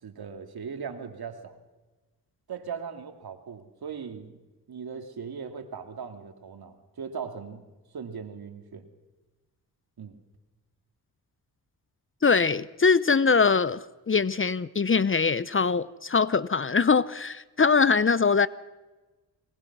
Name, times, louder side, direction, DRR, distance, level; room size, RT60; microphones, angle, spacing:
voice 1, 0.0-1.6 2.5-4.4 4.7-7.6 7.9-8.9 10.0-10.2, right 6 dB, 65° right, 2.8 m, -39 dB
voice 2, 12.2-18.5, left 5 dB, 30° left, 0.7 m, -22 dB
22.5 x 20.0 x 6.2 m
cardioid pair, 55°, 40 cm